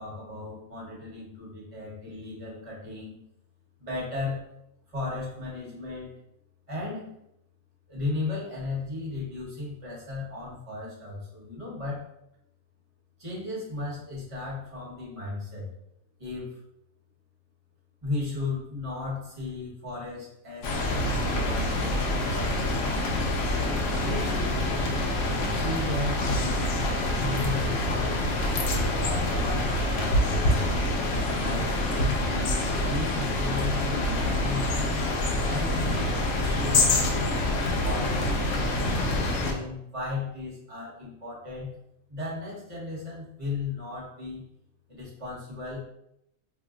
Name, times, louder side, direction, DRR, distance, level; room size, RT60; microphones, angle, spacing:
voice 1, 0.0-3.1 3.8-4.4 4.9-6.1 6.7-7.1 7.9-12.1 13.2-15.7 16.2-16.6 18.0-23.3 24.0-24.6 25.5-26.6 27.2-30.7 31.4-32.5 32.9-35.0 35.4-37.3 37.8-41.7 42.1-44.4 44.9-45.8, left 3 dB, 25° right, -6 dB, 1.1 m, -35 dB
sound 1, 20.6-39.5, left 1 dB, 70° left, 0.9 m, -26 dB
2.8 x 2.1 x 3.6 m, 0.79 s
omnidirectional pair, 1.5 m